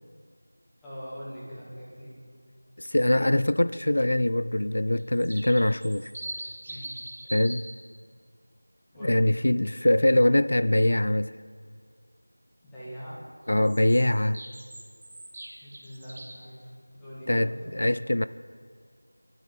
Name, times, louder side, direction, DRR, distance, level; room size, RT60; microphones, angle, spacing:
voice 1, 0.8-2.2 6.7-6.9 8.9-9.3 12.6-13.2 15.6-18.1, equal, 5° left, 1.9 m, -42 dB
voice 2, 2.8-6.1 7.3-7.7 9.0-11.3 13.5-14.4 17.3-18.2, left 1 dB, 50° left, 0.4 m, -23 dB
sound 1, 4.9-7.7 13.6-16.5, right 1 dB, 25° right, 1.6 m, -41 dB
23.0 x 12.0 x 4.1 m
figure-of-eight pair, 175°, 0 cm